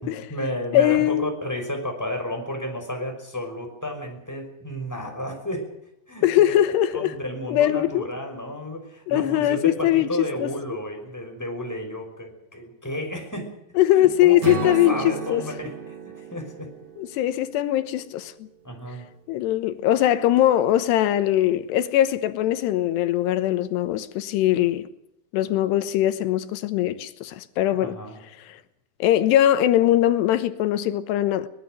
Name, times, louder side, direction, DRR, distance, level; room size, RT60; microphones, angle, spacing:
voice 1, 0.0-5.7 6.1-6.4 6.9-13.6 13.9-16.0 16.3-16.7 18.6-19.1 27.8-28.2, left 1 dB, 5° left, 5.3 m, -32 dB
voice 2, 0.7-1.3 6.2-7.1 7.5-8.1 9.1-10.1 10.4-10.5 13.8-15.4 17.0-18.3 19.3-24.9 25.3-28.0 28.5-28.6 29.0-31.5, left 12 dB, 90° left, 3.2 m, -21 dB
Strum, 14.4-18.6, right 5 dB, 30° right, 2.4 m, -34 dB
23.5 x 20.0 x 6.5 m
omnidirectional pair, 4.8 m